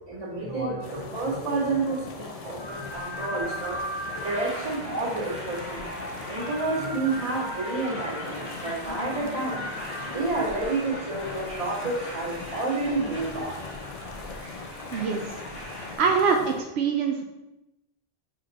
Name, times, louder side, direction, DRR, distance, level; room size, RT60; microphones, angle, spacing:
voice 1, 0.1-5.8 6.3-9.7 10.1-13.6 14.0-14.1 14.4-14.6, right 3 dB, 40° right, -7 dB, 2.1 m, -30 dB
sound 1, 0.8-16.6, left 4 dB, 40° left, 0.7 m, -41 dB
sound 2, 2.6-15.9, equal, 75° left, 1.7 m, -38 dB
voice 2, 14.9-15.3 16.0-17.2, right 5 dB, 90° right, 2 dB, 0.9 m, -24 dB
5.7 x 4.2 x 4.2 m, 0.95 s
omnidirectional pair, 1.1 m